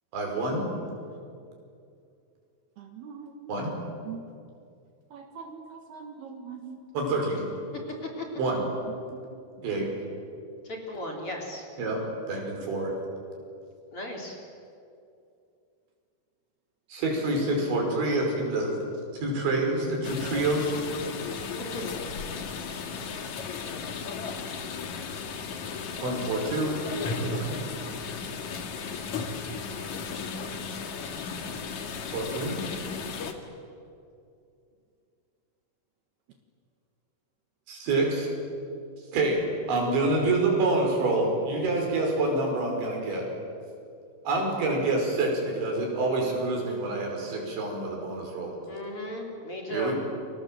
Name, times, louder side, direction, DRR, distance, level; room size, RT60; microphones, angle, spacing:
voice 1, 0.1-0.7 3.5-3.7 6.9-7.4 8.4-8.6 9.6-9.9 11.8-12.9 16.9-18.7 19.2-20.7 26.0-26.8 27.2-27.5 32.1-32.6 37.7-38.3 39.1-39.4 39.7-43.3 44.3-48.5 49.7-49.9, right 2 dB, 90° right, 0 dB, 7.7 m, -27 dB
voice 2, 2.8-3.5 4.0-4.3 5.1-6.8 9.3-9.4, right 6 dB, 65° right, 3 dB, 3.4 m, -42 dB
voice 3, 10.7-11.7 13.9-14.4 21.7-21.9 48.7-49.9, left 1 dB, 35° left, 0 dB, 4.0 m, -36 dB
sound 1, 20.0-33.3, left 5 dB, 55° left, 2.6 m, -35 dB
30.0 x 25.0 x 7.8 m, 2.5 s
omnidirectional pair, 5.1 m